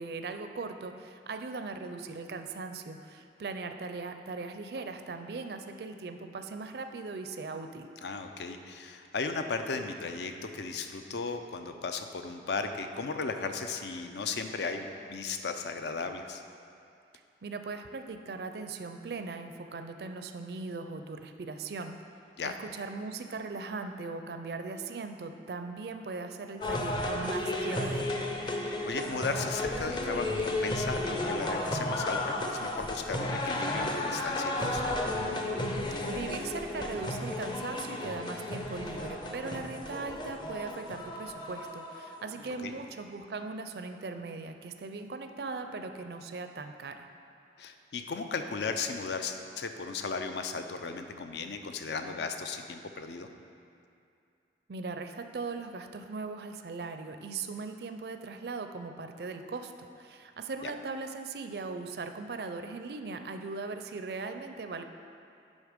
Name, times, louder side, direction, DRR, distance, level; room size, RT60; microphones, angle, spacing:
voice 1, 0.0-7.9 17.4-22.0 22.4-28.1 36.1-47.1 54.7-64.8, right 3 dB, 60° right, 7 dB, 0.4 m, -39 dB
voice 2, 8.0-16.4 22.4-22.5 28.6-34.8 42.6-42.7 47.6-53.3 60.6-60.7, left 4 dB, 70° left, 6 dB, 0.5 m, -36 dB
sound 1, 26.6-42.7, left 1 dB, 25° left, 0.5 m, -33 dB
8.1 x 5.3 x 5.1 m, 2.5 s
head